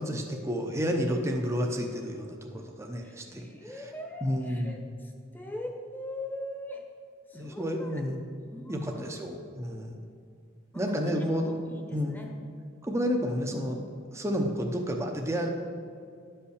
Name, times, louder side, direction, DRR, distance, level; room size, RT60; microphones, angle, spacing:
voice 1, 0.0-3.5 4.2-4.8 7.3-8.2 8.7-10.0 10.7-11.5 11.9-12.2 12.8-13.8 14.1-15.5, equal, 15° right, 3 dB, 0.7 m, -30 dB
voice 2, 3.0-6.8 7.3-8.0 8.4-9.3 10.7-12.3, left 1 dB, 10° left, 1 dB, 1.0 m, -41 dB
11.0 x 5.6 x 6.5 m, 2.3 s
head